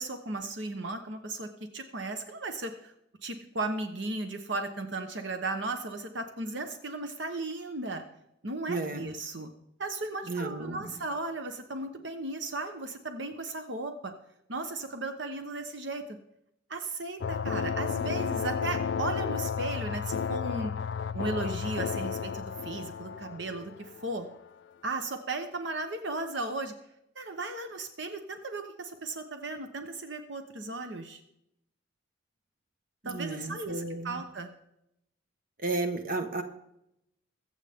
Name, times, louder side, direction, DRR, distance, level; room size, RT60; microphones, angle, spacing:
voice 1, 0.0-2.9 3.2-8.0 8.4-9.5 9.8-14.1 14.5-16.0 16.7-20.7 21.1-24.3 24.8-26.7 27.1-31.2 33.0-34.5, right 2 dB, 65° right, 7 dB, 1.0 m, -36 dB
voice 2, 8.7-9.1 10.2-11.0 33.0-34.2 35.6-36.4, right 3 dB, 45° right, 7 dB, 1.3 m, -33 dB
sound 1, 17.2-24.4, left 6 dB, 65° left, 0.3 m, -33 dB
23.0 x 8.2 x 3.6 m, 0.81 s
head